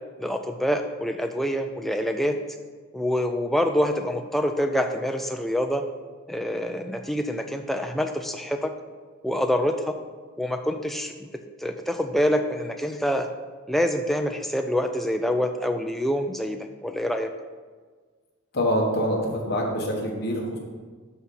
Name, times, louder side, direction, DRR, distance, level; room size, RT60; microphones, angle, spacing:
voice 1, 0.2-2.4 2.9-5.8 6.3-8.7 9.2-10.0 10.4-11.3 11.6-13.3 13.7-17.3, equal, ahead, 5 dB, 0.3 m, -26 dB
voice 2, 18.5-20.6, equal, 45° left, -1 dB, 1.4 m, -25 dB
12.0 x 4.2 x 3.9 m, 1.5 s
head